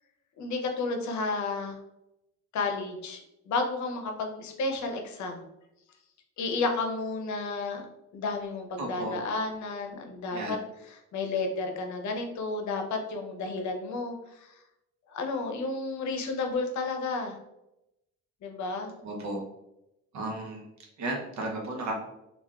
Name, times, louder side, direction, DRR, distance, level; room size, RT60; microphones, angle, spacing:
voice 1, 0.4-1.8 2.5-5.4 6.4-7.8 8.1-10.6 10.9-14.5 15.1-17.4 18.4-18.9, left 3 dB, 70° left, 3 dB, 0.7 m, -32 dB
voice 2, 8.8-9.2 10.3-10.5 19.0-19.4 20.1-20.6 21.0-21.9, right 2 dB, 65° right, 0 dB, 0.8 m, -34 dB
3.5 x 2.4 x 2.3 m, 0.88 s
cardioid pair, 90°, 30 cm